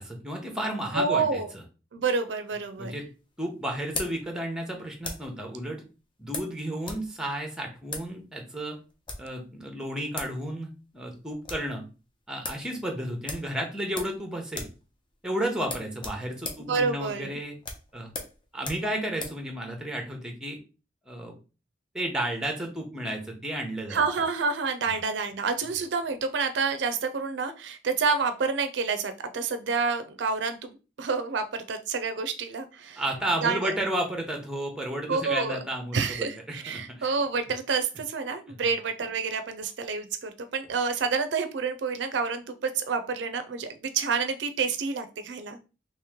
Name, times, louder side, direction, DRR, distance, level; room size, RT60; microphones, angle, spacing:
voice 1, 0.0-1.6 2.8-3.0 3.4-5.8 6.2-8.8 9.2-11.8 12.3-14.7 15.2-17.5 17.9-18.1 18.5-20.6 21.1-21.3 21.9-24.0 24.9-25.0 33.0-37.1, right 1 dB, 5° right, 3 dB, 0.8 m, -32 dB
voice 2, 0.9-1.5 1.9-3.0 16.6-17.4 23.9-33.0 33.4-33.7 35.1-35.6 35.9-45.6, right 5 dB, 70° right, 9 dB, 0.4 m, -28 dB
sound 1, 2.5-5.4 6.3-7.1 7.3-7.4 7.8-8.1 8.9-9.3 9.9-10.0 10.1-10.4 10.7-10.8 11.1-11.7 12.1-12.2 12.4-12.7 13.2-14.2 14.5-14.8 15.1-15.2 15.6-19.4, left 2 dB, 25° left, 0.7 m, -38 dB
3.0 x 3.0 x 3.5 m, 0.33 s
head